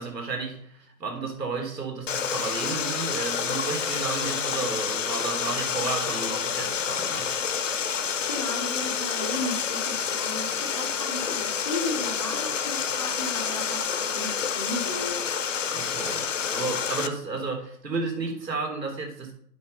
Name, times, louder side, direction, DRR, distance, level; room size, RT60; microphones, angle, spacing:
voice 1, 0.0-7.3 15.7-19.3, right 4 dB, 80° right, 2 dB, 3.8 m, -32 dB
Water, 2.1-17.1, left 7 dB, 50° left, 0.9 m, -28 dB
voice 2, 8.3-15.3, left 2 dB, 20° left, 4 dB, 0.8 m, -35 dB
8.6 x 6.4 x 5.6 m, 0.66 s
hypercardioid pair, 160°, 49 cm